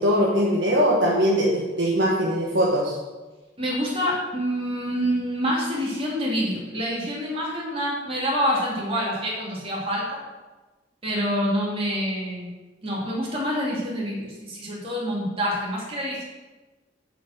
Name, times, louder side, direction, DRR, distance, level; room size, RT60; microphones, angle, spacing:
voice 1, 0.0-3.0, equal, 75° right, -3 dB, 1.2 m, -21 dB
voice 2, 3.6-10.2 11.0-12.5 12.8-16.2, equal, 30° right, -4 dB, 2.6 m, -27 dB
7.8 x 5.1 x 6.5 m, 1.2 s
head